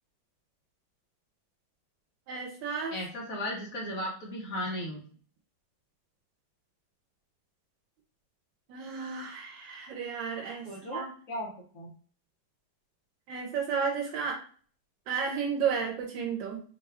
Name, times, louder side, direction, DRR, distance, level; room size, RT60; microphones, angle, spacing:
voice 1, 2.3-2.9 8.7-11.1 13.3-14.4 15.1-16.6, right 6 dB, 75° right, 1 dB, 1.3 m, -32 dB
voice 2, 2.9-5.0 10.6-11.0 11.3-11.5 11.7-11.9, left 1 dB, 55° left, -2 dB, 1.0 m, -35 dB
4.7 x 2.2 x 3.4 m, 0.43 s
omnidirectional pair, 2.2 m